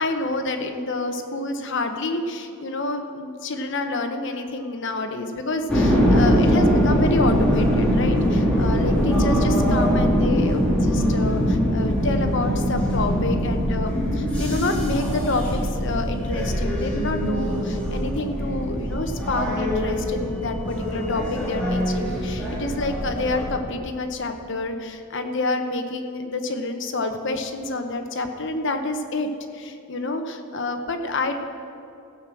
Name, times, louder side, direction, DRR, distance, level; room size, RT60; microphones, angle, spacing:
voice 1, 0.0-31.4, left 2 dB, 55° left, 6 dB, 0.9 m, -28 dB
sound 1, 5.7-23.5, equal, 5° left, 2.2 m, -22 dB
15.0 x 6.2 x 7.5 m, 2.7 s
head